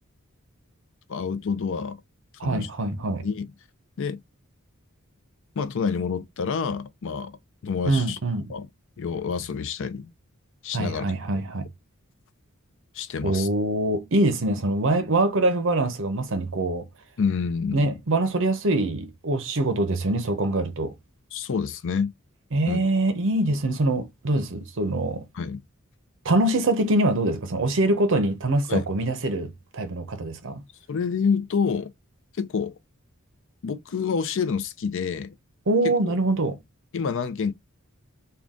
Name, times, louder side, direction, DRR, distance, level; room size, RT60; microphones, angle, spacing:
voice 1, 1.1-2.0 2.4-2.7 3.2-3.5 4.0-4.2 5.6-7.3 7.6-8.2 8.5-8.7 9.0-10.1 10.6-11.1 12.9-13.5 17.2-18.0 21.3-22.1 22.7-22.8 25.3-25.6 28.7-28.8 30.9-31.9 32.4-32.7 33.6-35.3 35.8-36.2 36.9-37.5, left 5 dB, 60° left, 0.4 m, -28 dB
voice 2, 2.4-3.3 7.8-8.5 10.7-11.7 13.2-16.8 17.7-20.9 22.5-25.2 26.2-30.6 35.7-36.6, right 2 dB, 65° right, 0.7 m, -24 dB
3.7 x 2.3 x 3.6 m
head